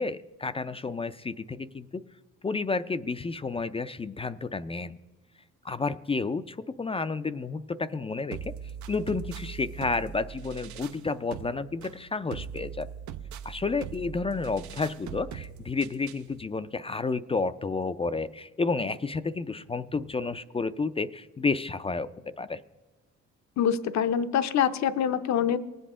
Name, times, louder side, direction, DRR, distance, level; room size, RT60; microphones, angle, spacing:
voice 1, 0.0-2.0 2.4-5.0 5.6-8.5 8.9-12.9 13.4-22.6, left 4 dB, 20° left, 12 dB, 0.4 m, -31 dB
sound 1, 8.3-16.3, right 8 dB, 75° right, 0.6 m, -41 dB
voice 2, 23.6-25.6, left 8 dB, 65° left, 10 dB, 0.7 m, -25 dB
19.5 x 7.9 x 3.7 m, 1.3 s
cardioid pair, 90°, 30 cm